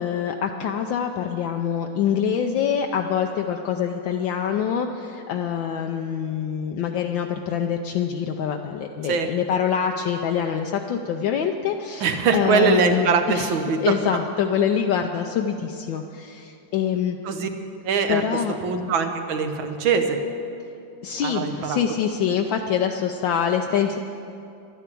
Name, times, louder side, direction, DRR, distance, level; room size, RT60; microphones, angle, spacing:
voice 1, 0.0-17.2 18.1-18.5 21.0-24.0, left 8 dB, 75° left, 4 dB, 1.3 m, -25 dB
voice 2, 12.0-13.9 17.3-17.5 17.8-18.2 18.6-20.2 21.2-21.8, right 5 dB, 75° right, 6 dB, 1.8 m, -22 dB
12.0 x 10.0 x 8.4 m, 2.7 s
omnidirectional pair, 2.2 m